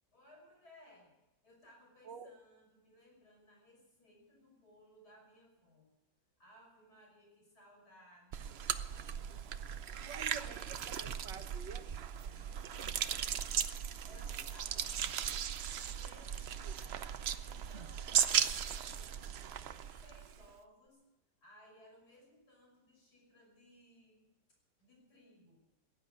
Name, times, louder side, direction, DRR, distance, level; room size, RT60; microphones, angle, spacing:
voice 1, 0.1-1.1 1.4-5.9 6.4-8.5 12.1-15.4 16.0-17.0 17.4-21.1 21.4-24.2 24.8-25.6, left 1 dB, 60° left, -1 dB, 6.5 m, -62 dB
voice 2, 2.0-2.4 10.0-12.1 16.6-16.7, right 6 dB, 90° right, 6 dB, 2.1 m, -49 dB
sound 1, 8.3-20.5, right 8 dB, 70° right, 0.6 m, -37 dB
17.0 x 10.5 x 7.9 m, 0.96 s
omnidirectional pair, 1.9 m